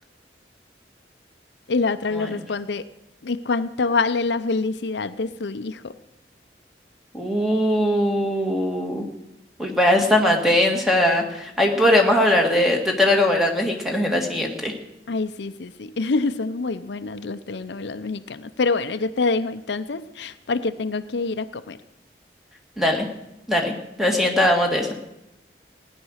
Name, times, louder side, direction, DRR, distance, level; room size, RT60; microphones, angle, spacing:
voice 1, 1.7-2.8 3.2-5.9 15.1-21.8, left 3 dB, 80° left, 11 dB, 0.6 m, -26 dB
voice 2, 7.1-9.0 9.6-14.7 22.8-23.1 23.5-23.7 24.0-24.9, left 1 dB, ahead, 2 dB, 1.9 m, -20 dB
16.5 x 10.0 x 6.4 m, 0.89 s
head